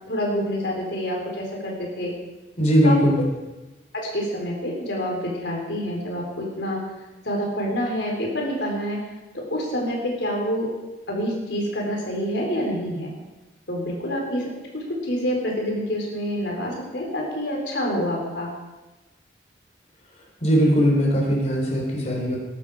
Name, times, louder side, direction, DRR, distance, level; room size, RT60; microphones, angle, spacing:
voice 1, 0.1-2.1 2.8-3.0 3.9-6.8 7.2-9.0 9.3-10.7 11.1-13.1 13.7-18.5, equal, 75° left, -1 dB, 4.3 m, -27 dB
voice 2, 2.6-3.3 20.4-22.4, equal, 40° left, -1 dB, 3.9 m, -19 dB
21.0 x 12.0 x 5.0 m, 1.1 s
head